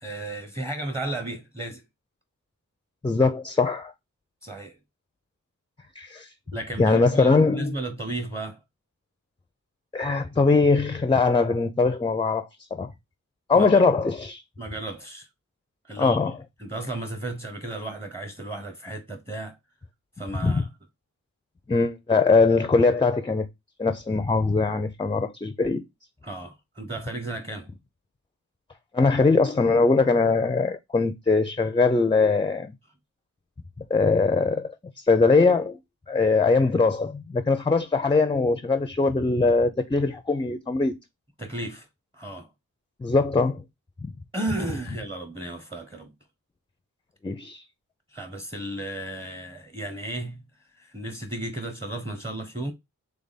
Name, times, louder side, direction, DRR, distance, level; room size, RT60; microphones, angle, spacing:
voice 1, 0.0-1.8 4.4-4.8 6.5-8.6 13.5-13.8 14.6-15.3 15.8-16.3 16.6-19.6 20.2-20.7 26.2-27.7 41.4-41.9 42.1-42.5 44.3-46.1 48.1-50.4 50.7-52.7, right 2 dB, 15° right, 0.9 m, -34 dB
voice 2, 3.0-3.9 6.0-6.3 6.8-7.8 9.9-12.9 13.5-14.4 16.0-16.4 20.4-20.6 21.7-23.5 23.8-25.8 28.9-32.7 33.9-34.7 35.1-35.8 36.1-41.0 43.0-43.6 44.0-44.1 47.2-47.6, left 4 dB, 15° left, 0.5 m, -21 dB
3.4 x 3.3 x 4.0 m
wide cardioid pair, 75°, 33 cm